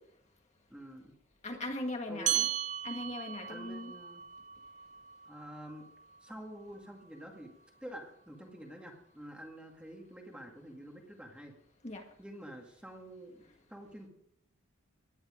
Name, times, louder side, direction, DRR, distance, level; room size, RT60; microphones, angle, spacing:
voice 1, 0.7-1.1 2.1-2.5 3.5-4.2 5.3-5.9 6.2-7.5 7.8-11.5 12.2-13.4 13.7-14.1, right 1 dB, 5° right, 1 dB, 2.0 m, -48 dB
voice 2, 1.4-2.5 2.8-3.9 11.8-12.0, left 1 dB, 30° left, 2 dB, 1.7 m, -39 dB
sound 1, 2.3-7.1, right 11 dB, 35° right, 0.5 m, -37 dB
18.0 x 11.5 x 5.1 m, 0.74 s
head